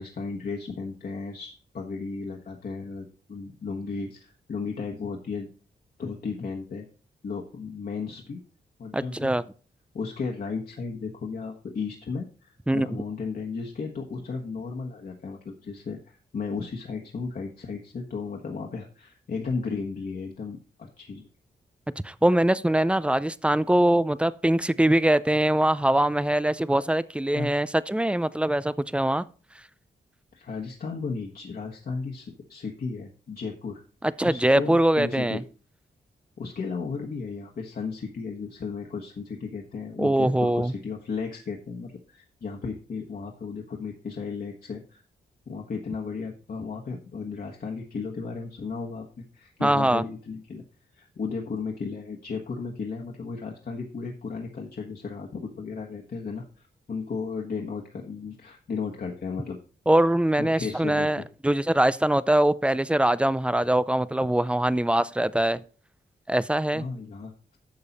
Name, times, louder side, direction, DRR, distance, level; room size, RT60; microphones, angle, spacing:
voice 1, 0.0-5.5 6.0-6.8 7.2-8.4 8.8-9.3 9.9-16.0 16.3-21.2 27.3-27.5 30.3-33.8 34.2-35.4 36.4-45.0 45.5-50.6 50.9-59.6 60.4-61.2 66.7-67.6, left 4 dB, 55° left, 1.5 m, -34 dB
voice 2, 8.9-9.4 12.7-12.9 22.0-29.3 34.2-35.4 40.0-40.7 49.6-50.0 59.9-65.6 66.3-66.9, right 1 dB, 5° right, 0.4 m, -23 dB
10.5 x 6.7 x 4.2 m
wide cardioid pair, 120°, 18 cm